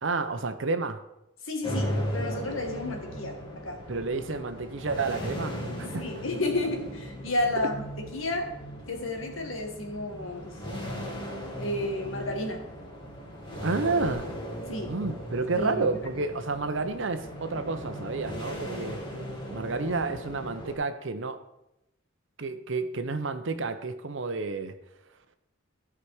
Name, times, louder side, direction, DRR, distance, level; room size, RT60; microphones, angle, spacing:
voice 1, 0.0-1.0 3.9-6.1 13.6-14.3 14.8-19.0 19.5-21.4 22.4-24.7, right 3 dB, 65° right, 9 dB, 0.8 m, -30 dB
voice 2, 1.4-3.3 3.6-3.8 5.9-7.7 8.1-8.5 8.9-10.6 11.6-12.7 14.7-14.9 15.5-15.8 16.1-16.2, left 2 dB, 85° left, 3 dB, 1.9 m, -31 dB
sound 1, 1.6-20.7, equal, 25° left, 2.0 m, -37 dB
14.0 x 5.0 x 4.9 m, 0.87 s
head